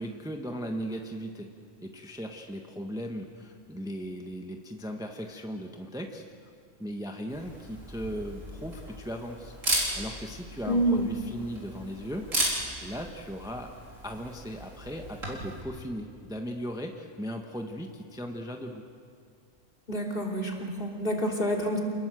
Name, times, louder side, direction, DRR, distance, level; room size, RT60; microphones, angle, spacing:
voice 1, 0.0-1.5 1.8-6.5 6.8-12.3 12.8-13.7 14.0-18.9, equal, 5° right, 3 dB, 1.3 m, -37 dB
Camera, 7.3-15.6, right 1 dB, 75° right, 5.1 m, -35 dB
voice 2, 10.7-11.1 19.9-21.8, equal, 40° left, 1 dB, 3.2 m, -28 dB
28.0 x 20.0 x 7.7 m, 2.2 s
omnidirectional pair, 1.4 m